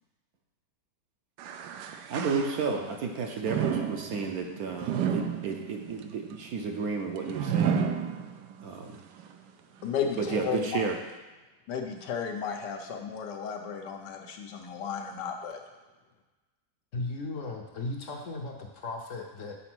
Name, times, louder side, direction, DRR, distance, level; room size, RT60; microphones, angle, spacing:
sound 1, 1.4-3.0 3.4-8.7 9.2-9.3 10.1-10.2, right 7 dB, 85° right, 1.2 m, -32 dB
voice 1, 2.1-7.9 8.6-9.0 10.2-11.0, right 4 dB, 65° right, 3 dB, 1.2 m, -32 dB
voice 2, 9.8-10.8 11.7-15.6, left 6 dB, 80° left, 3 dB, 1.5 m, -34 dB
voice 3, 16.9-19.5, left 2 dB, 55° left, 2 dB, 1.0 m, -36 dB
7.0 x 4.1 x 6.1 m, 1.2 s
omnidirectional pair, 1.8 m